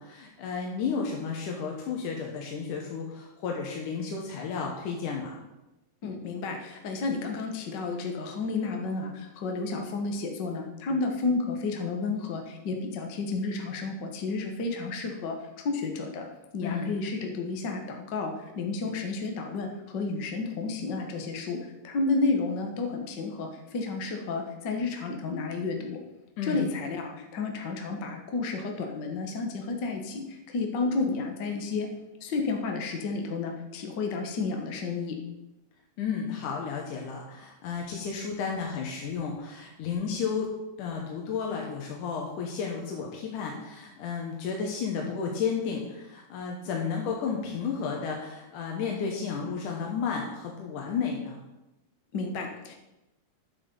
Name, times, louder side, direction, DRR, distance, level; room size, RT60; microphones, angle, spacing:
voice 1, 0.0-5.4 16.6-16.9 26.4-26.6 36.0-40.5 40.8-51.4, left 6 dB, 80° left, 0 dB, 2.7 m, -32 dB
voice 2, 6.0-16.3 16.5-26.0 26.4-31.9 32.2-35.2 52.1-52.7, left 3 dB, 55° left, 3 dB, 1.2 m, -31 dB
10.0 x 7.4 x 5.4 m, 0.97 s
omnidirectional pair, 3.5 m